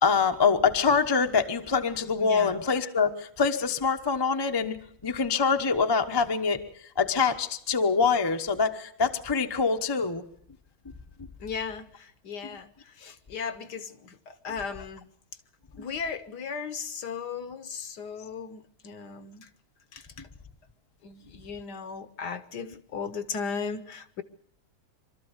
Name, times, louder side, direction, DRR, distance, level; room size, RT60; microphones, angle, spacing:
voice 1, 0.0-4.8 5.0-6.6 7.0-10.2, left 5 dB, 20° left, 5 dB, 0.6 m, -25 dB
voice 2, 2.2-2.6 11.4-12.7 13.0-15.0 15.8-19.5 19.9-20.0 21.0-24.2, left 6 dB, 60° left, 11 dB, 1.4 m, -36 dB
24.5 x 13.0 x 8.1 m, 0.65 s
omnidirectional pair, 2.2 m